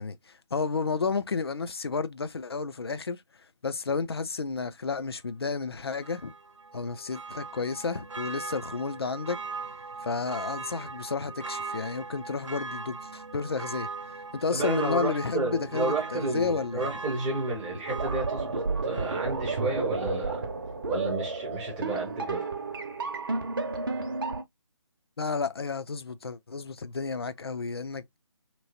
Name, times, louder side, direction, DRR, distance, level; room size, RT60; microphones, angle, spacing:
voice 1, 0.0-3.2 3.6-6.3 6.7-9.4 10.0-13.9 14.3-16.9 25.2-28.2, left 4 dB, 55° left, 0.4 m, -31 dB
Church bell, 6.0-19.7 20.0-20.1, right 4 dB, 80° right, 0.4 m, -40 dB
voice 2, 14.5-20.5 20.8-22.4, right 2 dB, 5° right, 0.5 m, -31 dB
sound 1, 17.8-24.4, right 3 dB, 45° right, 0.6 m, -32 dB
3.0 x 3.0 x 2.6 m
figure-of-eight pair, 150°, 16 cm